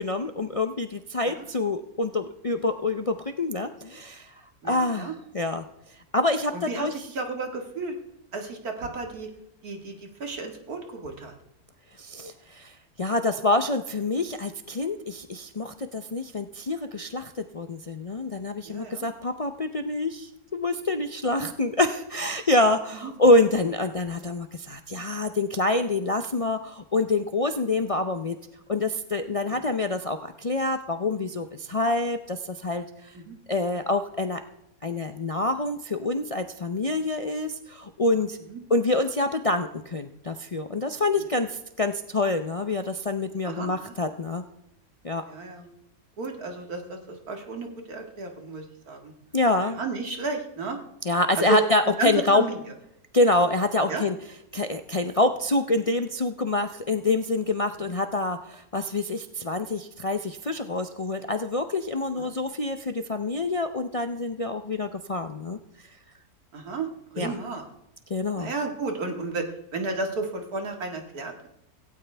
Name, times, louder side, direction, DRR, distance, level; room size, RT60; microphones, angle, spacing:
voice 1, 0.0-4.3 4.6-5.6 6.1-6.9 12.0-12.7 13.0-28.4 28.7-33.1 33.5-34.4 34.8-38.4 38.7-44.4 45.0-45.2 49.3-49.8 51.0-52.4 53.1-54.2 54.5-65.6 67.2-67.3 68.1-68.5, left 2 dB, 45° left, 7 dB, 0.4 m, -26 dB
voice 2, 4.6-5.1 6.5-7.9 8.3-9.3 9.6-11.3 18.6-19.1 21.3-21.5 23.0-23.1 33.1-33.4 38.5-38.6 43.4-43.9 45.3-45.7 46.2-49.1 49.8-50.8 51.4-51.6 52.0-52.6 53.9-54.0 62.2-62.3 66.5-66.9 67.1-67.6 68.4-71.5, right 3 dB, 90° right, 3 dB, 2.4 m, -32 dB
17.0 x 16.5 x 3.4 m, 0.83 s
omnidirectional pair, 1.5 m